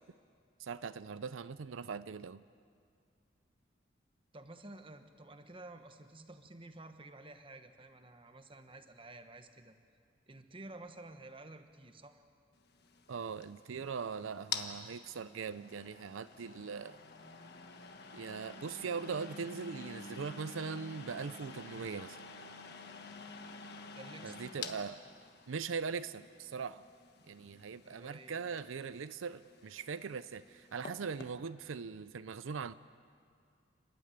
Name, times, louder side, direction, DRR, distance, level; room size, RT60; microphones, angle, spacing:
voice 1, 0.6-2.5 13.1-17.0 18.1-22.2 24.2-25.0 25.5-26.8 27.3-32.7, right 5 dB, 90° right, 14 dB, 0.5 m, -41 dB
voice 2, 4.3-9.7 10.3-12.2 23.9-24.4 27.8-28.4, right 2 dB, 25° right, 8 dB, 1.2 m, -52 dB
sound 1, 12.7-31.4, left 5 dB, 55° left, 1.4 m, -49 dB
30.0 x 12.0 x 9.4 m, 2.3 s
head